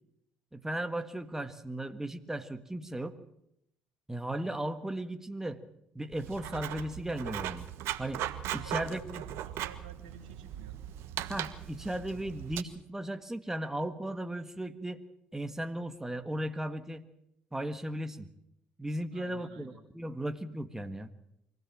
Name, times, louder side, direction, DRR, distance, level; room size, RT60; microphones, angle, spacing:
voice 1, 0.5-3.1 4.1-5.6 5.9-7.7 8.0-8.2 8.5-9.2 11.3-15.0 15.3-17.1 17.5-18.3 18.8-21.1, right 1 dB, 10° right, 9 dB, 1.6 m, -36 dB
Writing, 6.1-12.6, right 12 dB, 70° right, 1.3 m, -39 dB
voice 2, 8.6-10.8 19.1-19.8, right 6 dB, 90° right, 6 dB, 2.5 m, -51 dB
24.5 x 16.5 x 7.4 m, 0.80 s
hypercardioid pair, 65°, 5 cm